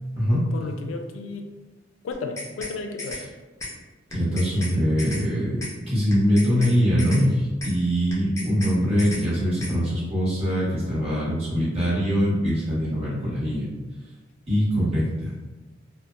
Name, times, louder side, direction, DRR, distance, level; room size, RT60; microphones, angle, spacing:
voice 1, 0.5-1.5 2.0-3.3, left 3 dB, 80° left, 4 dB, 0.3 m, -33 dB
sound 1, 2.1-2.7 3.0-3.2 3.6-3.7 4.1-4.7 5.0-5.2 5.6-5.7 6.1-6.7 7.0-7.2 7.6-7.7 8.1-8.7 9.0-9.2 9.6-9.7, left 2 dB, 15° left, 0.5 m, -35 dB
voice 2, 4.1-13.7 14.5-15.3, equal, 30° right, -8 dB, 1.0 m, -23 dB
2.7 x 2.0 x 2.4 m, 1.2 s
head